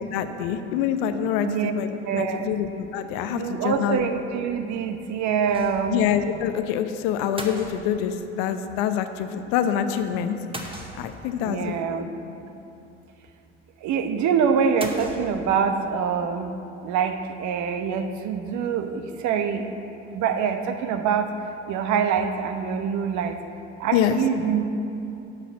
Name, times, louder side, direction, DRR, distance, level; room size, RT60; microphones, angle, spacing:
voice 1, 0.1-4.1 5.9-10.3 11.0-12.1 23.9-24.2, left 9 dB, 65° left, 8 dB, 0.8 m, -26 dB
voice 2, 2.1-2.5 3.3-6.0 11.4-12.1 13.8-16.5 16.8-19.7 20.1-21.3 21.7-23.4 23.8-24.7, right 7 dB, 50° right, 7 dB, 0.9 m, -25 dB
sound 1, 5.5-6.0 6.3-6.4 7.4-8.3 10.5-11.4 14.8-15.7, right 1 dB, 15° right, 1.4 m, -38 dB
10.5 x 5.9 x 7.1 m, 2.8 s
hypercardioid pair, 60°, 36 cm